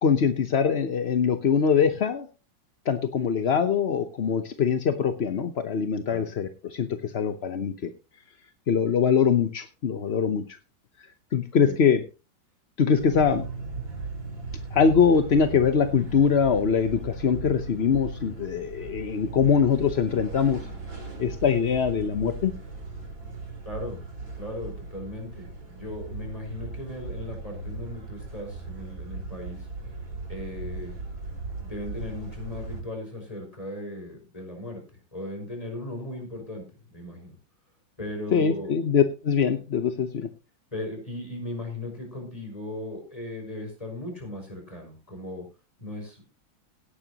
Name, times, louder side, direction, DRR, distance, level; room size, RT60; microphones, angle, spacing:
voice 1, 0.0-2.3 2.9-7.9 8.7-10.4 11.3-12.0 12.8-13.4 14.7-20.6 21.2-22.5 38.3-40.3, left 6 dB, 45° left, 9 dB, 0.9 m, -23 dB
sound 1, 13.0-32.8, right 3 dB, 80° right, 4.4 m, -38 dB
voice 2, 23.7-24.0 24.4-29.7 30.3-31.0 31.6-34.8 35.1-36.6 36.9-37.4 38.0-38.7 40.7-45.5 45.8-46.2, left 1 dB, 20° left, 2 dB, 5.6 m, -37 dB
17.5 x 10.0 x 2.9 m, 0.30 s
omnidirectional pair, 2.0 m